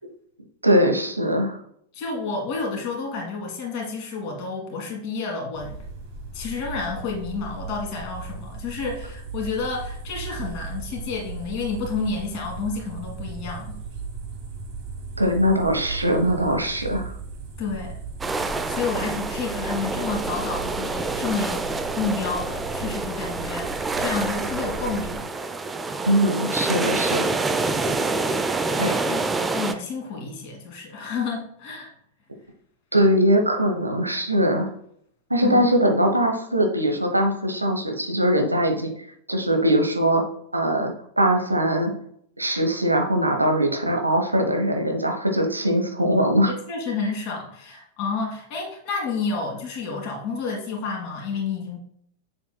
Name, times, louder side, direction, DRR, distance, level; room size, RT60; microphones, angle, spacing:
voice 1, 0.6-1.6 15.2-17.1 26.0-27.2 28.8-28.9 32.9-34.7 35.3-38.9 39.3-40.2 40.5-41.9 42.4-46.5, equal, 85° right, 3 dB, 1.0 m, -21 dB
voice 2, 1.9-5.8 6.3-13.8 17.6-18.0 18.7-25.3 27.9-28.1 28.4-29.2 29.5-31.9 35.4-35.7 46.5-51.8, left 4 dB, 40° left, 0 dB, 2.0 m, -30 dB
sound 1, 5.5-25.2, right 4 dB, 45° right, 2.0 m, -37 dB
sound 2, 18.2-29.7, right 3 dB, 15° right, 0.5 m, -27 dB
6.9 x 6.9 x 2.3 m, 0.69 s
figure-of-eight pair, 90°, 0 cm